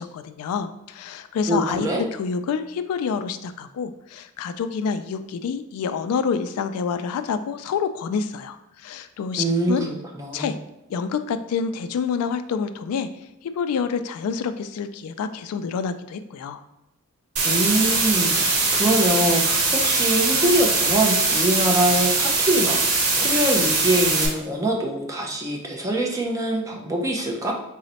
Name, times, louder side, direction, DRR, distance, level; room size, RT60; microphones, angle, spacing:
voice 1, 0.0-9.9 10.3-10.6 10.9-13.1 13.4-16.6, left 6 dB, 90° left, 14 dB, 0.3 m, -27 dB
voice 2, 1.5-2.0 9.4-10.5 17.4-27.5, right 1 dB, 15° right, 0 dB, 0.6 m, -24 dB
sound 1, 17.4-24.3, right 3 dB, 80° right, 0.9 m, -21 dB
4.0 x 2.1 x 4.0 m, 0.93 s
head